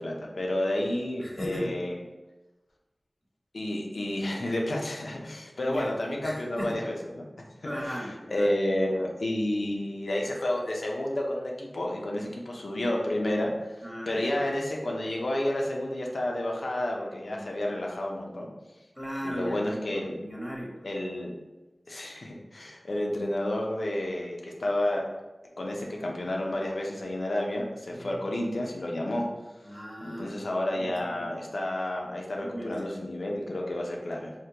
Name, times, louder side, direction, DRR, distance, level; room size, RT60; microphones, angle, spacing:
voice 1, 0.0-1.9 3.5-7.5 7.9-8.0 8.3-13.5 14.1-18.5 19.2-20.2 20.8-21.3 21.9-25.0 25.6-29.3 30.0-34.3, left 1 dB, 85° left, -1 dB, 0.5 m, -30 dB
voice 2, 1.2-1.8 5.6-6.8 7.6-8.5 13.8-14.5 17.3-17.4 19.0-20.9 27.9-28.2 29.6-30.4 30.7-31.2 32.4-32.8, equal, 5° left, -3 dB, 0.9 m, -37 dB
3.6 x 2.1 x 2.8 m, 1.1 s
wide cardioid pair, 45°, 0 cm